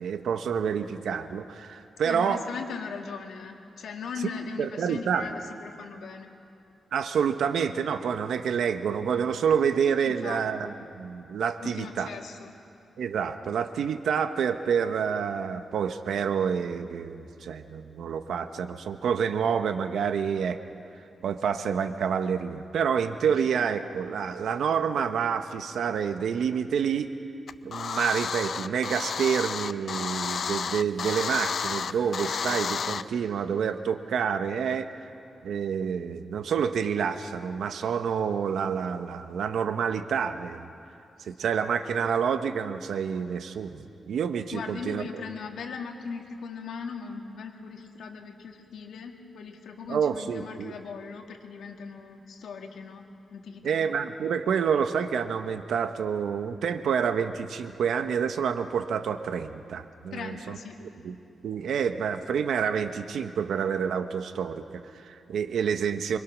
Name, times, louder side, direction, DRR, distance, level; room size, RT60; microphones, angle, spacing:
voice 1, 0.0-2.4 4.6-5.3 6.9-12.1 13.0-20.6 21.2-27.1 27.6-34.9 35.4-40.7 41.2-45.2 49.9-50.8 53.6-60.6 61.0-61.2 61.4-66.2, right 7 dB, 80° right, 8 dB, 1.1 m, -28 dB
voice 2, 2.0-6.3 10.0-10.4 11.6-12.5 44.5-53.8 60.1-60.8, left 5 dB, 85° left, 2 dB, 2.2 m, -39 dB
sound 1, 27.5-33.0, left 6 dB, 60° left, 0.5 m, -31 dB
26.5 x 23.5 x 6.2 m, 2.7 s
wide cardioid pair, 120°, 0 cm